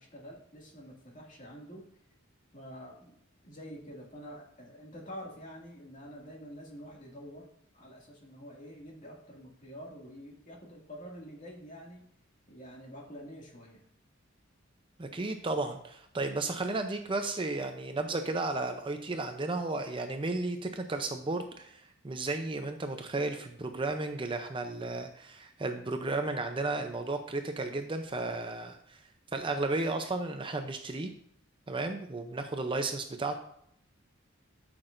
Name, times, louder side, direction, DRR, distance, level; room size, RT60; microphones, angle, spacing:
voice 1, 0.0-1.9 2.5-3.2 3.4-7.5 7.7-12.0 12.5-13.8, equal, 40° left, -2 dB, 2.2 m, -47 dB
voice 2, 15.0-29.0 29.3-31.1 31.7-33.4, right 2 dB, 25° right, 6 dB, 0.6 m, -33 dB
12.5 x 6.1 x 2.6 m, 0.71 s
head